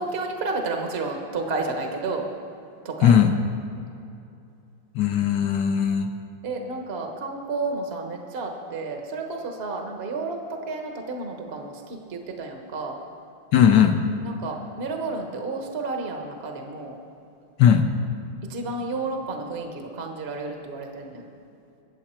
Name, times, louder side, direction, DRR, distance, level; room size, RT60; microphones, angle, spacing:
voice 1, 0.0-2.3 2.8-3.2 6.4-13.0 14.2-17.0 18.4-21.2, right 3 dB, 35° right, 3 dB, 1.2 m, -31 dB
voice 2, 3.0-3.3 5.0-6.1 13.5-14.0 17.6-17.9, left 8 dB, 65° left, 6 dB, 1.2 m, -18 dB
22.0 x 7.7 x 4.4 m, 2.7 s
omnidirectional pair, 2.3 m